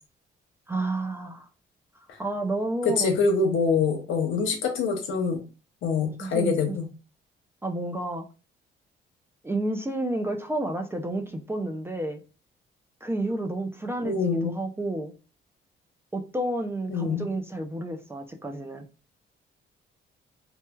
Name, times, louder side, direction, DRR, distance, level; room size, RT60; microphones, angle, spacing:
voice 1, 0.7-1.5 2.2-3.1 6.2-6.8 7.6-8.2 9.4-12.2 13.0-15.1 16.1-18.9, right 1 dB, 10° right, 0.4 m, -30 dB
voice 2, 2.8-5.4 5.8-6.9 14.0-14.5 16.9-17.3, left 4 dB, 75° left, 0.8 m, -25 dB
3.1 x 2.1 x 2.2 m
cardioid pair, 90°, 20 cm